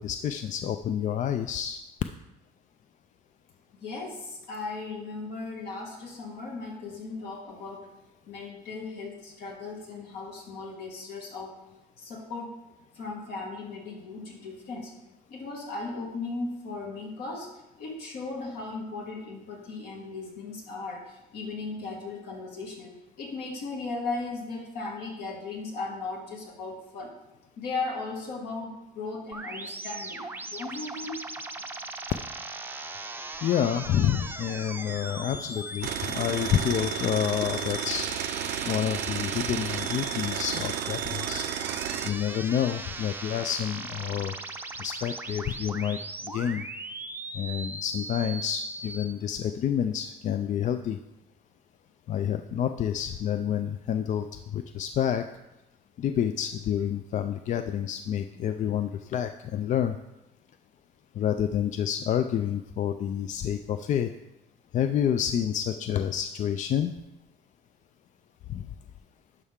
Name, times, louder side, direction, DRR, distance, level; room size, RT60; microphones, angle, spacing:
voice 1, 0.0-1.8 33.4-38.1 38.7-41.5 42.0-44.4 44.8-46.6 47.3-51.0 52.1-55.2 56.0-60.0 61.2-64.1 64.7-66.9 68.5-68.7, left 9 dB, 45° left, 9 dB, 0.4 m, -28 dB
voice 2, 3.7-7.9 8.3-11.6 12.0-12.5 12.9-14.9 15.3-17.5 17.8-22.9 23.2-27.1 27.6-31.1, left 3 dB, 75° left, -1 dB, 2.2 m, -37 dB
sound 1, 29.3-49.0, right 2 dB, 10° right, 0.6 m, -38 dB
sound 2, 35.8-42.1, right 11 dB, 85° right, 0.6 m, -32 dB
11.0 x 5.5 x 3.6 m, 0.95 s
cardioid pair, 110°, 17 cm